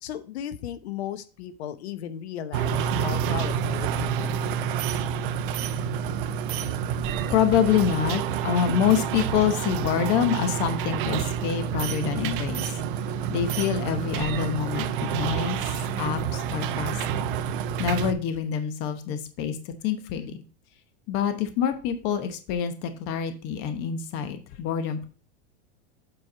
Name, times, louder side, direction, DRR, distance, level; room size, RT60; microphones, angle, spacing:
voice 1, 0.0-4.4, left 10 dB, 80° left, 12 dB, 0.9 m, -36 dB
sound 1, 2.5-18.1, right 8 dB, 55° right, 0.7 m, -28 dB
voice 2, 7.3-12.8 13.3-15.6 16.0-17.0 17.8-20.4 21.1-25.1, left 8 dB, 35° left, 10 dB, 1.0 m, -26 dB
7.9 x 4.5 x 4.4 m, 0.37 s
supercardioid pair, 170°, 32 cm